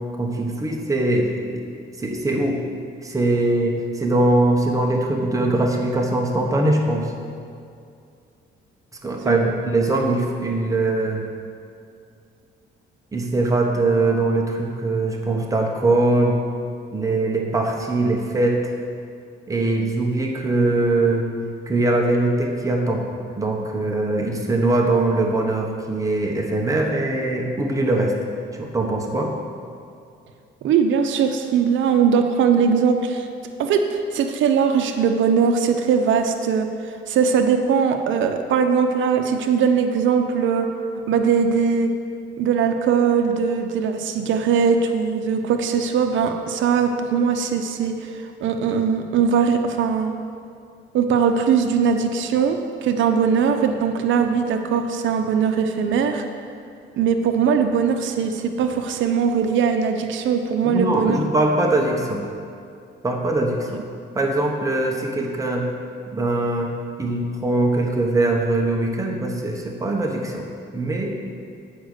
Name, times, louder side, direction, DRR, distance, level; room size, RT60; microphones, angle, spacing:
voice 1, 0.2-1.6 2.0-2.6 3.0-7.1 9.0-11.2 13.1-16.4 16.9-18.6 19.5-21.3 21.7-23.1 23.4-28.1 28.6-29.3 60.6-62.2 63.0-63.8 64.1-65.7 66.1-66.7 67.0-70.5 70.7-71.1, right 2 dB, 15° right, 0 dB, 1.1 m, -21 dB
voice 2, 30.6-33.3 33.6-40.7 41.1-41.9 42.4-50.1 50.9-56.2 57.0-61.2, right 6 dB, 75° right, 5 dB, 0.7 m, -20 dB
7.9 x 5.1 x 6.5 m, 2.4 s
cardioid pair, 90°, 20 cm